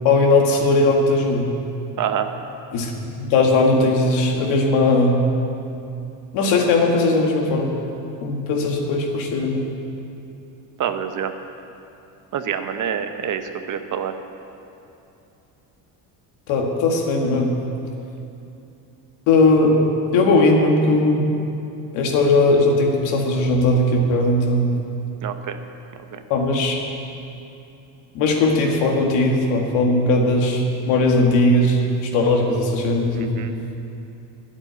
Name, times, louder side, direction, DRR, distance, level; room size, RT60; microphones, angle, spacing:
voice 1, 0.0-1.5 2.7-2.9 3.2-5.2 6.3-7.7 8.2-9.7 16.5-17.6 19.3-19.8 20.1-21.3 21.9-24.7 26.3-26.8 28.1-33.4, left 2 dB, 85° left, 1 dB, 2.1 m, -18 dB
voice 2, 2.0-2.3 10.8-11.3 12.3-14.1 25.2-25.6 26.1-26.2 33.2-33.5, right 8 dB, 45° right, 8 dB, 0.9 m, -26 dB
10.5 x 8.3 x 9.6 m, 2.8 s
cardioid pair, 125°, 45 cm